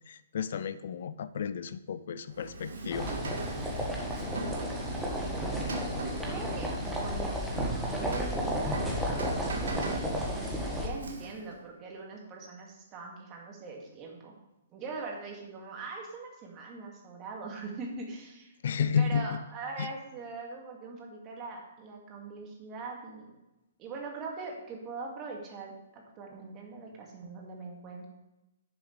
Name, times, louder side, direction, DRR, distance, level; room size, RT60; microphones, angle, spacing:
voice 1, 0.1-3.1 18.6-19.4 19.8-19.9, left 7 dB, 55° left, 14 dB, 0.5 m, -32 dB
Rain, 2.3-11.6, right 2 dB, 65° right, 1.7 m, -40 dB
sound 1, 2.9-10.9, equal, 5° right, 1.8 m, -33 dB
voice 2, 4.8-5.7 6.2-6.7 7.0-8.8 9.8-14.4 14.7-18.5 18.8-23.4 23.8-28.1, right 4 dB, 25° right, 0 dB, 2.3 m, -42 dB
10.5 x 7.1 x 3.4 m, 0.97 s
figure-of-eight pair, 120°, 0 cm